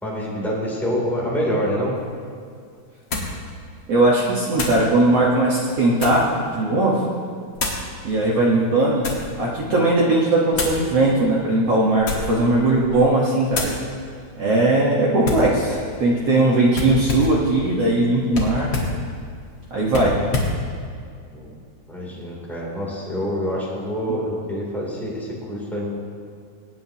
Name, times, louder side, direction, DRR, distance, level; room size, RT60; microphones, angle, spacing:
voice 1, 0.0-2.0 21.3-21.5 21.9-26.0, equal, ahead, -5 dB, 1.7 m, -26 dB
sound 1, 2.0-2.1 3.1-3.4 4.5-4.9 5.6-6.3 7.5-7.9 8.6-9.3 10.5-10.8 11.9-12.4 12.8-13.1 13.5-13.8 15.2-15.5 16.7-17.4 18.3-19.0 19.9-20.6, left 2 dB, 85° left, 1.0 m, -27 dB
voice 2, 3.9-7.0 8.0-9.0 9.4-13.7 14.4-18.7 19.7-20.2, right 2 dB, 65° right, -5 dB, 1.5 m, -19 dB
24.0 x 9.3 x 2.9 m, 2.2 s
omnidirectional pair, 4.8 m